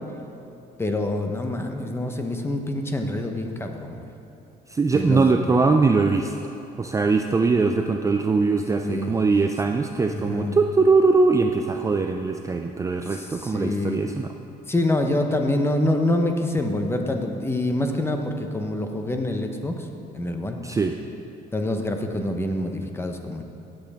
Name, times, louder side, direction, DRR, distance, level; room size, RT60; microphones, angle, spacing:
voice 1, 0.8-4.0 4.9-5.4 8.8-9.1 10.1-10.6 13.1-14.1 14.7-19.8 20.1-20.6 21.5-23.4, left 1 dB, 15° left, 4 dB, 1.0 m, -26 dB
voice 2, 4.7-6.5 6.8-14.3 20.6-21.0, right 4 dB, 20° right, 4 dB, 0.4 m, -21 dB
15.5 x 7.8 x 3.6 m, 2.8 s
cardioid pair, 110°, 17 cm